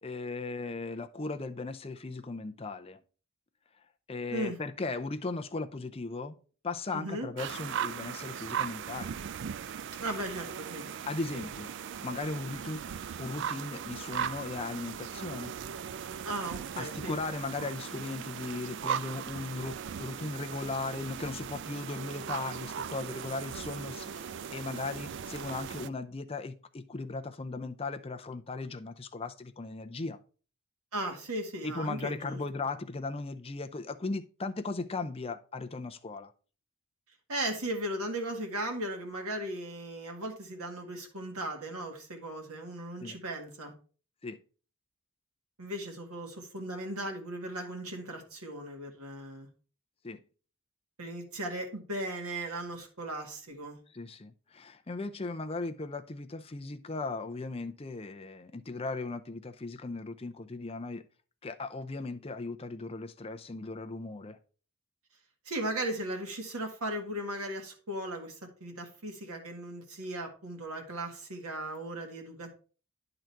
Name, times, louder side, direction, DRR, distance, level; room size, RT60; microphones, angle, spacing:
voice 1, 0.0-3.0 4.1-6.4 6.6-9.1 11.1-11.7 12.0-15.5 16.8-30.2 31.6-36.3 43.0-43.2 44.2-44.4 50.0-50.2 53.9-61.0 61.4-64.4, left 3 dB, 25° left, 0.5 m, -37 dB
voice 2, 6.9-7.3 10.0-10.9 11.3-11.4 16.2-17.2 30.9-32.4 37.3-43.7 45.6-49.5 51.0-53.8 65.5-72.5, right 1 dB, 85° right, 1.9 m, -37 dB
sound 1, 7.4-25.9, right 8 dB, 55° right, 0.3 m, -38 dB
10.5 x 3.9 x 4.5 m
head